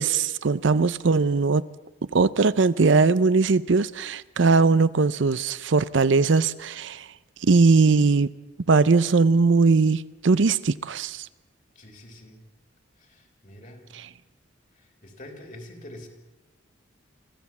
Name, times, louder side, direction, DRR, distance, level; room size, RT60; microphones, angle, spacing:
voice 1, 0.0-1.7 2.1-7.0 7.4-8.3 8.7-11.3 13.9-14.1, right 4 dB, 70° right, 0.6 m, -20 dB
voice 2, 11.7-12.4 13.0-13.9 15.0-16.1, left 1 dB, 40° left, 3.1 m, -45 dB
24.5 x 15.0 x 7.2 m
head